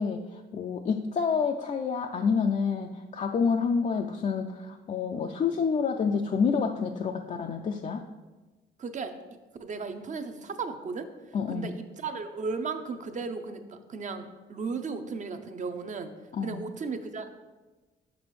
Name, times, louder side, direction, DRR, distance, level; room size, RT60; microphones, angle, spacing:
voice 1, 0.0-8.1 11.3-11.7 16.3-16.6, left 5 dB, 35° left, 3 dB, 0.4 m, -28 dB
voice 2, 8.8-9.1 9.6-11.1 11.5-16.1 16.4-17.3, right 4 dB, 40° right, 8 dB, 0.6 m, -35 dB
6.6 x 6.1 x 3.1 m, 1.2 s
cardioid pair, 90°, 20 cm